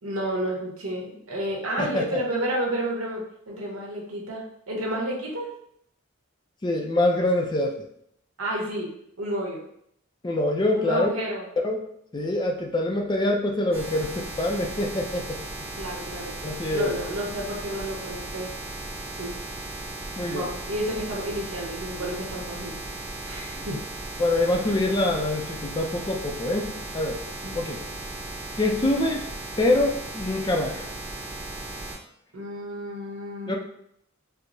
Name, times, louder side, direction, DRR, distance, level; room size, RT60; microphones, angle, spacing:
voice 1, 0.0-5.5 8.4-8.9 9.2-9.7 10.7-11.4 15.7-16.4 16.7-18.5 19.1-19.3 20.2-22.8 23.2-23.8 27.4-27.6 32.3-33.6, right 1 dB, 85° right, -2 dB, 1.0 m, -31 dB
voice 2, 6.6-7.9 10.2-11.1 11.6-11.9 12.1-15.4 16.4-16.9 20.2-20.5 23.6-23.7 24.2-27.2 27.5-27.8 28.6-29.2 29.6-30.8 33.5-33.6, left 2 dB, 20° left, 1 dB, 0.4 m, -25 dB
sound 1, 13.7-32.0, right 2 dB, 10° right, 0.8 m, -36 dB
4.5 x 2.0 x 2.6 m, 0.71 s
head